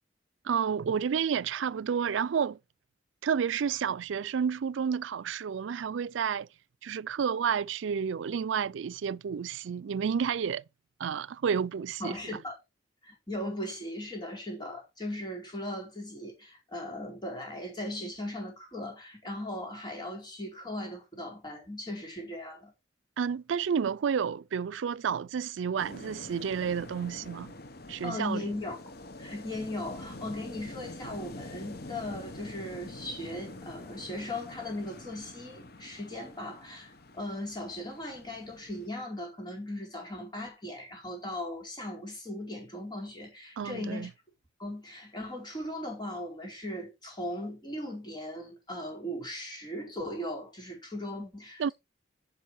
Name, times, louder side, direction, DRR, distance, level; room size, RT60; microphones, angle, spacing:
voice 1, 0.4-2.6 3.2-6.5 6.8-10.6 11.0-12.2 23.2-27.5 27.9-28.4 43.6-44.1 51.6-51.7, right 7 dB, 80° right, 0.4 m, -30 dB
voice 2, 12.0-12.5 13.0-22.7 28.0-28.8 29.2-44.1 44.6-51.7, left 1 dB, 20° left, 4.4 m, -38 dB
sound 1, 25.8-38.9, left 2 dB, 55° left, 1.1 m, -46 dB
10.0 x 5.4 x 4.6 m
head